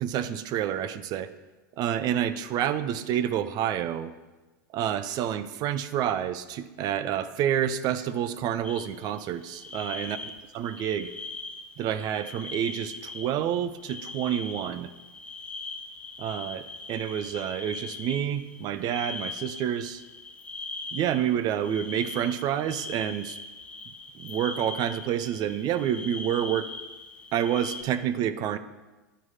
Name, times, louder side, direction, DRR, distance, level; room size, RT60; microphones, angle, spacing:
voice 1, 0.0-1.3 1.8-4.1 4.7-10.2 10.5-11.1 11.8-14.9 16.2-20.0 20.9-23.4 24.1-26.7 27.3-28.6, right 10 dB, 40° right, 13 dB, 0.6 m, -28 dB
sound 1, 8.6-27.8, left 3 dB, 15° left, 1.2 m, -41 dB
10.5 x 4.8 x 5.6 m, 1.2 s
hypercardioid pair, 110°, 10 cm